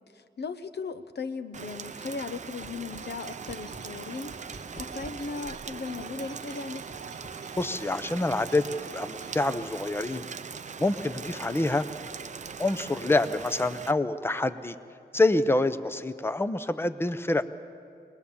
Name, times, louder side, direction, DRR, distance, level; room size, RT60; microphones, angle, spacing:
voice 1, 0.1-4.4 4.7-6.9, left 4 dB, 70° left, 11 dB, 1.0 m, -37 dB
Rain, 1.5-13.9, right 5 dB, 45° right, 0.5 m, -41 dB
sound 1, 2.6-3.1 3.5-3.8 4.3-5.2 5.7-6.1 6.9-7.7, equal, 45° left, 2.4 m, -46 dB
sound 2, 3.0-9.6, right 7 dB, 70° right, 1.0 m, -47 dB
voice 2, 7.6-10.3 10.8-11.9 12.6-14.7 15.1-17.4, left 2 dB, 15° left, 12 dB, 0.6 m, -26 dB
24.0 x 20.0 x 7.1 m, 2.6 s
wide cardioid pair, 170°, 18 cm